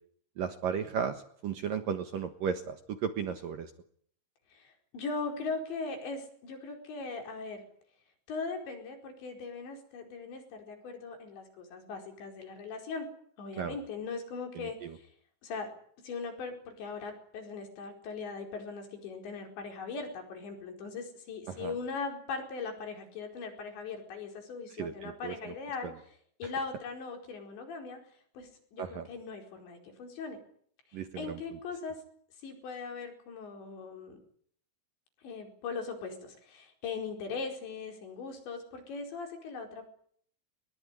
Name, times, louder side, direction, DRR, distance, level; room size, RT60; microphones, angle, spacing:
voice 1, 0.4-2.8 3.0-3.7 13.6-13.7 14.6-15.0 21.5-21.7 24.8-25.5 25.8-25.9 28.8-29.1 30.9-31.4, right 7 dB, 60° right, 8 dB, 2.5 m, -35 dB
voice 2, 4.5-7.7 8.3-13.1 13.4-15.1 15.4-15.7 16.0-25.9 26.4-28.0 28.4-30.4 30.9-32.0 32.4-34.2 35.2-39.9, left 4 dB, 65° left, 4 dB, 6.9 m, -39 dB
23.0 x 21.5 x 9.9 m, 0.62 s
omnidirectional pair, 5.5 m